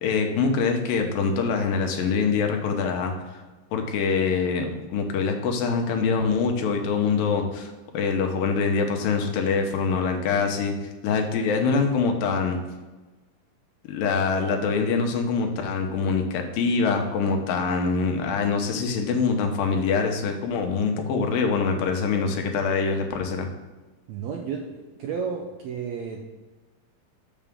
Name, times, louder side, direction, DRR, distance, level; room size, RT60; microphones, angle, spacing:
voice 1, 0.0-3.4 3.7-10.8 11.0-12.6 13.9-23.5, left 5 dB, 80° left, 3 dB, 2.7 m, -24 dB
voice 2, 24.1-26.2, right 6 dB, 80° right, 0 dB, 1.6 m, -32 dB
7.2 x 6.7 x 3.6 m, 1.2 s
omnidirectional pair, 4.0 m